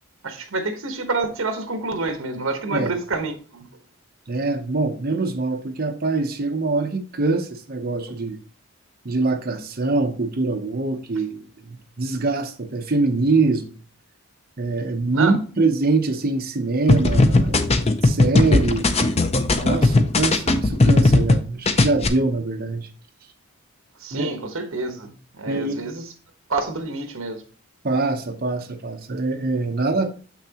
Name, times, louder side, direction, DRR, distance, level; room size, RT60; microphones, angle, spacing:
voice 1, 0.2-3.7 15.1-15.3 24.0-26.1 26.5-27.4, right 3 dB, 65° right, 1.1 m, -28 dB
voice 2, 4.3-8.4 9.0-13.7 14.6-18.9 19.6-22.9 24.1-24.3 25.5-25.8 27.8-30.1, right 3 dB, 45° right, 0.8 m, -24 dB
sound 1, 16.9-21.4 21.7-22.1, left 2 dB, 30° left, 0.5 m, -17 dB
7.0 x 5.9 x 2.9 m
head